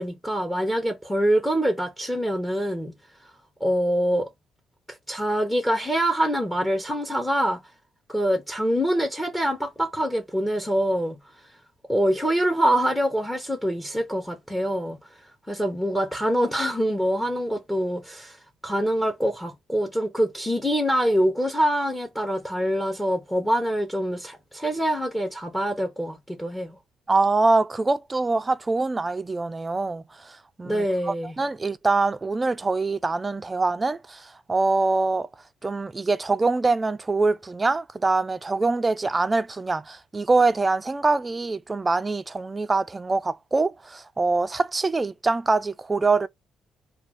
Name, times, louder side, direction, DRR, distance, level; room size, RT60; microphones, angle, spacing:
voice 1, 0.0-2.9 3.6-4.3 4.9-7.6 8.1-11.2 11.9-15.0 15.5-18.4 18.6-26.8 30.6-31.4, equal, 10° left, 0.8 m, -25 dB
voice 2, 27.1-35.3 35.6-46.3, right 3 dB, 25° right, 0.4 m, -24 dB
2.4 x 2.3 x 3.2 m
cardioid pair, 90°, 0 cm